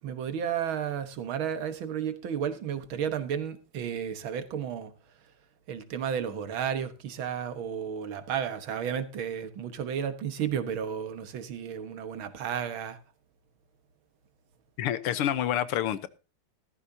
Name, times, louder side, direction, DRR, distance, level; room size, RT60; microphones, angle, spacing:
voice 1, 0.0-4.9 5.7-13.0, right 8 dB, 70° right, 2.1 m, -32 dB
voice 2, 14.8-16.1, left 11 dB, 85° left, 1.9 m, -28 dB
15.5 x 14.0 x 2.8 m
omnidirectional pair, 2.4 m